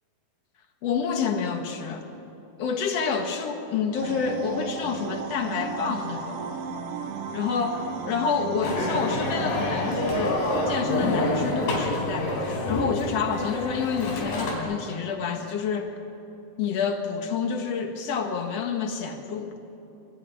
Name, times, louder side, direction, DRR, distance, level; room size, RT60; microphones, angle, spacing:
voice 1, 0.8-2.1 2.6-6.5 7.3-16.0 16.6-19.5, left 6 dB, 50° left, 5 dB, 2.2 m, -28 dB
sound 1, 3.9-10.8, right 6 dB, 70° right, 2.9 m, -35 dB
sound 2, 8.6-14.6, left 2 dB, 70° left, 5.4 m, -27 dB
27.0 x 14.0 x 9.8 m, 3.0 s
omnidirectional pair, 4.3 m